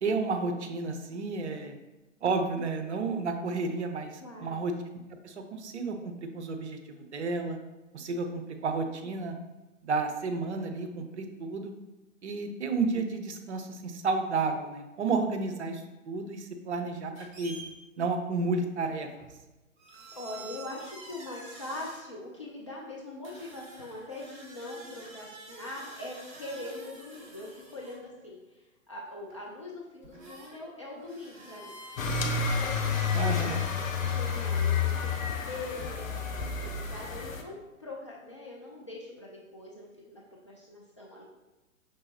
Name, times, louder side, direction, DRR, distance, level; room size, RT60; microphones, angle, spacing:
voice 1, 0.0-1.8 2.2-4.7 5.2-7.6 7.9-9.4 9.8-11.7 12.2-17.1 17.4-17.6 18.0-19.1 33.1-33.7, right 4 dB, 55° right, 6 dB, 0.6 m, -31 dB
voice 2, 4.2-4.6 19.9-31.8 32.2-33.6 34.0-35.2 35.4-41.2, left 2 dB, 25° left, -5 dB, 0.3 m, -42 dB
sound 1, 17.1-17.7 19.2-19.4 19.8-22.0 23.2-28.1 29.3-29.4 30.0-30.6 30.9-34.1, right 2 dB, 35° right, 1.1 m, -48 dB
sound 2, 32.0-37.4, left 5 dB, 75° left, 0.7 m, -30 dB
5.3 x 3.3 x 2.8 m, 1.1 s
figure-of-eight pair, 125°, 41 cm